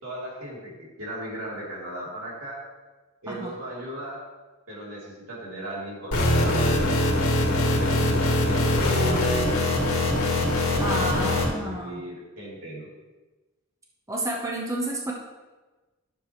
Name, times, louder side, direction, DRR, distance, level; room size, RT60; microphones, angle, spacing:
voice 1, 0.0-2.6 3.2-4.2 4.7-7.0 7.6-9.5 10.7-12.9, right 1 dB, 85° right, -5 dB, 3.3 m, -37 dB
sound 1, 6.1-11.5, left 1 dB, 85° left, 1.8 m, -22 dB
voice 2, 10.8-12.0 14.1-15.1, right 1 dB, 15° right, -1 dB, 1.0 m, -30 dB
12.0 x 6.8 x 3.1 m, 1.2 s
head